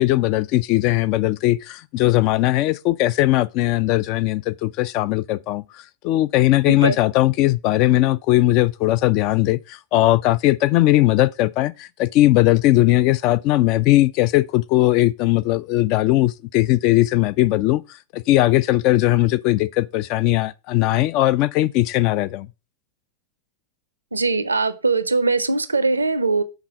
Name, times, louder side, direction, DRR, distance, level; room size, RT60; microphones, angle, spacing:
voice 1, 0.0-5.6 6.0-17.8 18.1-22.5, left 16 dB, 40° left, 0.3 m, -19 dB
voice 2, 24.1-26.4, right 3 dB, 80° right, 0.5 m, -21 dB
5.9 x 3.9 x 5.2 m
figure-of-eight pair, 90°, 0 cm